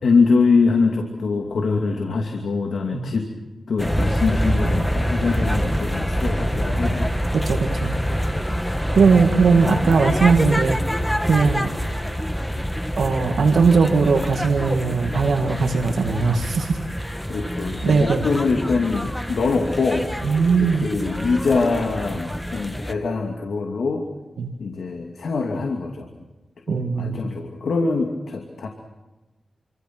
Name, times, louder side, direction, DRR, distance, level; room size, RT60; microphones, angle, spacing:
voice 1, 0.0-3.3 3.7-7.1 17.3-20.1 20.6-24.0 24.6-26.1 26.7-28.7, left 4 dB, 70° left, 3 dB, 2.6 m, -23 dB
sound 1, 3.8-22.9, equal, 5° left, 1.4 m, -26 dB
voice 2, 7.3-7.9 8.9-10.8 11.3-11.7 13.0-16.8 17.8-18.3 20.2-20.9 24.4-24.5 26.7-27.3, right 5 dB, 85° right, 3 dB, 2.0 m, -19 dB
28.0 x 26.0 x 6.2 m, 1.1 s
wide cardioid pair, 150°, 0 cm